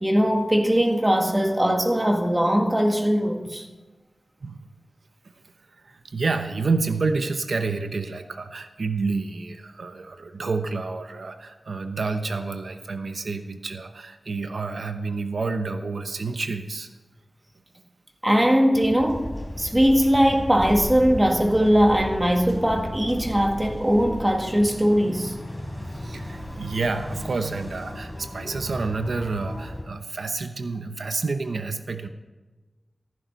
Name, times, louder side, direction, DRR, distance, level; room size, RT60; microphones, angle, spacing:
voice 1, 0.0-3.6 18.2-19.3 19.6-25.3, equal, 15° right, 1.7 m, -20 dB
voice 2, 5.7-16.9 25.9-32.1, right 4 dB, 80° right, 0.8 m, -29 dB
sound 1, 18.7-29.8, left 1 dB, 5° left, 4.2 m, -35 dB
16.0 x 14.5 x 4.1 m
wide cardioid pair, 90°, 0 cm